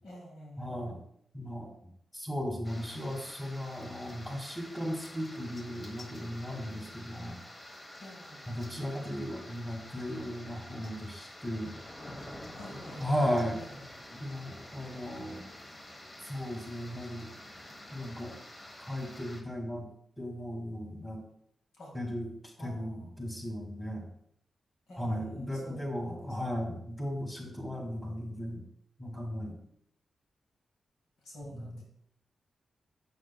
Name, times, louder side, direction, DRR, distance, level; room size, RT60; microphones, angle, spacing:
voice 1, 0.0-0.9 8.0-8.5 12.5-13.3 13.5-13.8 21.8-21.9 22.6-23.1 24.9-25.9 26.3-26.4 31.2-31.8, left 1 dB, 85° left, -2 dB, 1.9 m, -48 dB
voice 2, 0.6-1.0 1.3-1.7 2.1-7.4 8.5-11.8 13.0-13.6 14.1-15.4 16.2-17.3 17.9-18.4 18.8-19.9 20.2-21.2 21.9-24.1 25.0-28.6 29.0-29.6 31.5-31.8, equal, 10° left, 2 dB, 2.2 m, -36 dB
sound 1, 2.6-19.4, left 1 dB, 35° left, 1.1 m, -48 dB
7.1 x 6.3 x 2.3 m, 0.70 s
supercardioid pair, 45°, 0 cm